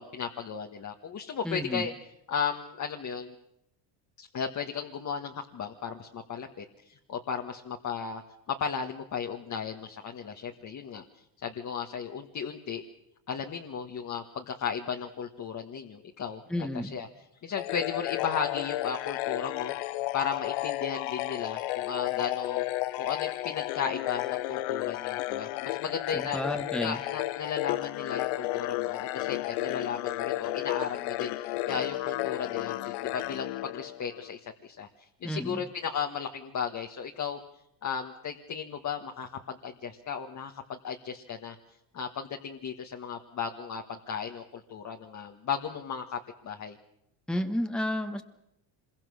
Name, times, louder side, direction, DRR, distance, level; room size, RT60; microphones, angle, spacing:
voice 1, 0.0-1.9 2.3-3.3 4.2-8.2 8.5-11.0 11.4-12.8 13.3-16.4 16.9-17.1 17.4-19.7 20.1-22.6 23.0-26.4 26.8-34.9 35.2-37.4 37.8-41.6 41.9-46.2 46.4-46.8, left 6 dB, 40° left, 3 dB, 1.6 m, -35 dB
voice 2, 1.4-1.9 16.5-16.9 26.1-27.0 35.2-35.6 47.3-48.2, left 1 dB, ahead, 7 dB, 1.4 m, -31 dB
sound 1, 17.6-34.3, left 17 dB, 80° left, 0.8 m, -33 dB
26.0 x 22.5 x 6.4 m, 0.81 s
cardioid pair, 125°, 46 cm